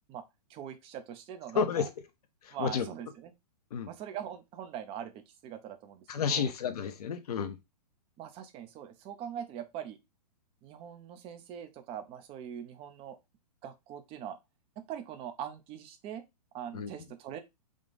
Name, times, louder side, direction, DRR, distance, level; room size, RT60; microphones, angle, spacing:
voice 1, 0.5-1.9 2.5-3.3 3.9-6.5 8.2-10.0 10.6-13.2 13.6-14.4 14.8-16.2 16.5-17.4, right 9 dB, 25° right, 0.6 m, -42 dB
voice 2, 1.5-1.9 2.4-2.9 3.7-3.9 6.1-7.6 16.7-16.9, left 6 dB, 65° left, 0.8 m, -31 dB
3.8 x 2.4 x 3.8 m
hypercardioid pair, 125°, 21 cm